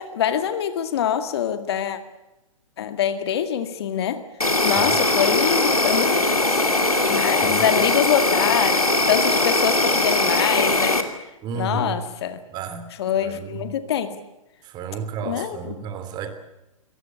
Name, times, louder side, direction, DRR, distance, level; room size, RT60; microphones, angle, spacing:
voice 1, 0.0-2.0 2.8-4.2 4.6-6.7 7.1-11.1 11.6-12.4 13.0-14.2 15.3-15.7, left 9 dB, 45° left, 10 dB, 2.0 m, -25 dB
Insect, 4.4-11.0, left 2 dB, 85° left, 2.9 m, -20 dB
voice 2, 4.6-5.0 7.3-7.7 11.4-12.0 12.5-12.9 13.2-13.7 14.6-16.3, right 5 dB, 25° right, 9 dB, 3.2 m, -32 dB
25.0 x 19.0 x 8.3 m, 0.96 s
figure-of-eight pair, 120°, 18 cm